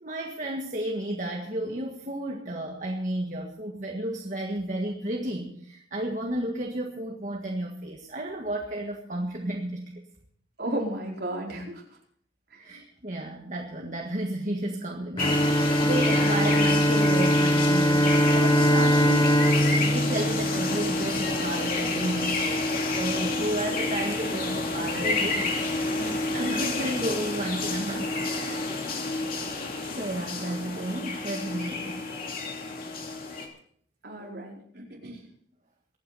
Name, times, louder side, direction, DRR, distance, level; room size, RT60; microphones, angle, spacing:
voice 1, 0.0-10.0 12.6-22.6 22.9-25.5 25.8-28.1 28.4-28.6 30.0-32.0, right 1 dB, 40° right, 1 dB, 1.7 m, -32 dB
voice 2, 10.6-11.8 12.5-12.6 25.0-25.3 25.8-26.2 34.0-35.2, right 1 dB, 60° right, -2 dB, 4.8 m, -34 dB
sound 1, 15.2-33.5, left 2 dB, 50° left, 2.7 m, -29 dB
Bowed string instrument, 15.2-21.4, equal, 25° left, 0.9 m, -23 dB
23.5 x 9.4 x 4.3 m, 0.62 s
head